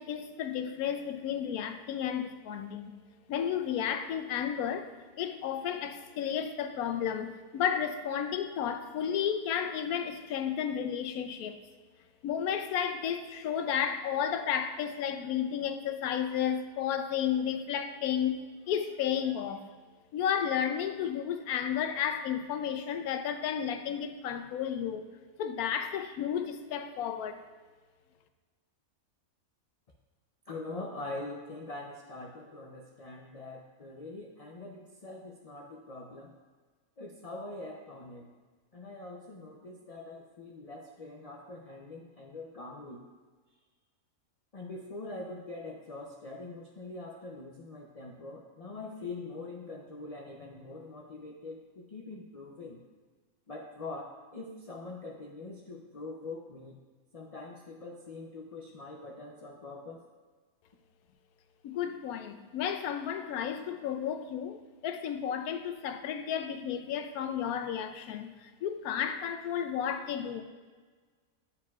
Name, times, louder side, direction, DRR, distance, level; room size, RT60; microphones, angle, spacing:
voice 1, 0.0-2.9 3.3-4.9 5.2-11.6 12.2-19.7 20.1-25.1 25.4-27.4 61.6-70.4, left 8 dB, 90° left, 1.1 m, -32 dB
voice 2, 30.5-36.3 37.0-38.3 38.7-43.0 44.5-52.8 53.5-56.8 57.1-60.1, left 2 dB, 55° left, 0.4 m, -43 dB
11.0 x 4.9 x 2.3 m
omnidirectional pair, 1.5 m